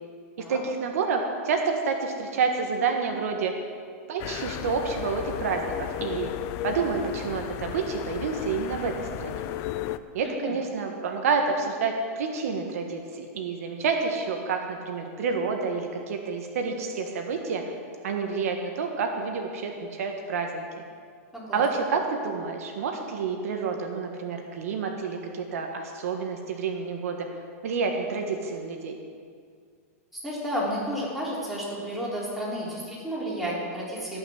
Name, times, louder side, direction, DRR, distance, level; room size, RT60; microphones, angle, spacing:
voice 1, 0.5-3.5 4.1-6.3 6.6-9.4 10.1-17.6 18.0-20.6 21.5-27.3 27.6-29.0, right 5 dB, 70° right, 3 dB, 1.6 m, -29 dB
sound 1, 4.2-10.0, left 12 dB, 35° left, 0.5 m, -34 dB
voice 2, 10.2-10.6 21.3-21.6 30.1-34.2, equal, ahead, -7 dB, 3.6 m, -32 dB
17.5 x 6.1 x 7.6 m, 2.1 s
supercardioid pair, 155°, 8 cm